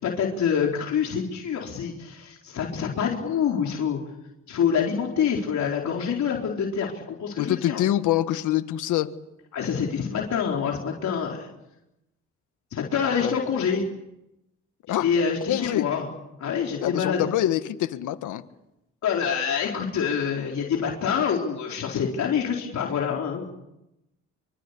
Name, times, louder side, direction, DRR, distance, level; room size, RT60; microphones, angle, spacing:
voice 1, 0.0-4.0 4.5-7.8 9.5-11.5 12.7-13.8 15.0-16.1 16.4-17.3 19.0-23.5, left 7 dB, 65° left, 0 dB, 4.5 m, -26 dB
voice 2, 7.4-9.1 13.2-13.3 14.9-15.1 15.5-15.9 16.8-18.4, left 13 dB, 85° left, 11 dB, 1.6 m, -25 dB
26.5 x 24.0 x 8.5 m, 0.90 s
cardioid pair, 90°, 30 cm